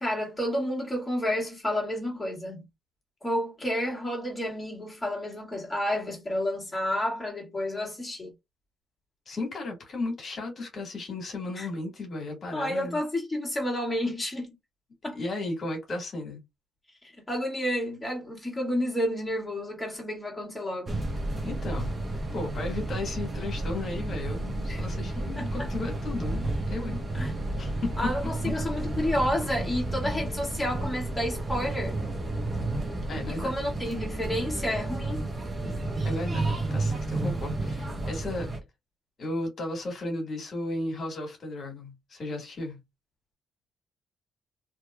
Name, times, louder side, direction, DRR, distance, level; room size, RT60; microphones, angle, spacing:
voice 1, 0.0-2.6 3.2-8.3 11.6-11.7 12.5-14.6 15.0-15.2 17.3-21.0 24.7-24.8 25.4-25.7 27.1-27.3 28.0-32.0 33.3-35.2, left 1 dB, 15° left, 1.8 m, -30 dB
voice 2, 9.3-13.0 15.2-16.4 21.4-21.9 22.3-27.0 27.6-28.0 33.1-33.5 36.0-38.5 39.2-42.8, left 2 dB, 50° left, 1.7 m, -35 dB
sound 1, 20.9-38.6, right 2 dB, 30° right, 1.0 m, -31 dB
2.9 x 2.9 x 2.3 m
cardioid pair, 90°, 0 cm